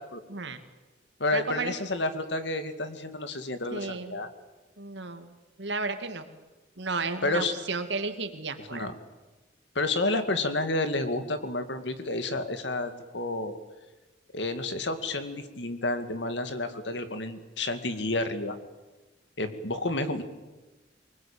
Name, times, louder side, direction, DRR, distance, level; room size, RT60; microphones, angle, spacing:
voice 1, 0.3-0.6 1.3-1.7 3.7-4.2 4.8-6.3 6.8-8.9, right 3 dB, 75° right, 7 dB, 2.3 m, -33 dB
voice 2, 1.2-4.3 7.2-7.5 8.6-8.9 9.8-13.6 14.3-18.6 19.4-20.2, left 2 dB, 75° left, 9 dB, 2.1 m, -30 dB
24.0 x 20.0 x 8.9 m, 1.2 s
head